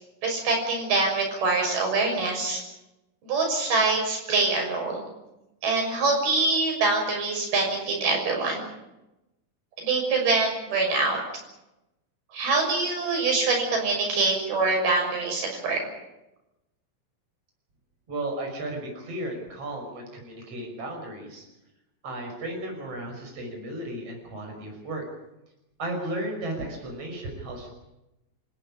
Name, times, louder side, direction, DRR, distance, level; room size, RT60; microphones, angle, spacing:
voice 1, 0.2-2.6 3.2-5.0 5.6-8.6 9.8-11.2 12.3-15.8, right 3 dB, 80° right, 1 dB, 8.2 m, -24 dB
voice 2, 18.1-21.5 22.0-25.0 25.8-27.7, right 1 dB, 40° right, 1 dB, 6.8 m, -34 dB
28.0 x 14.5 x 10.0 m, 0.93 s
omnidirectional pair, 4.3 m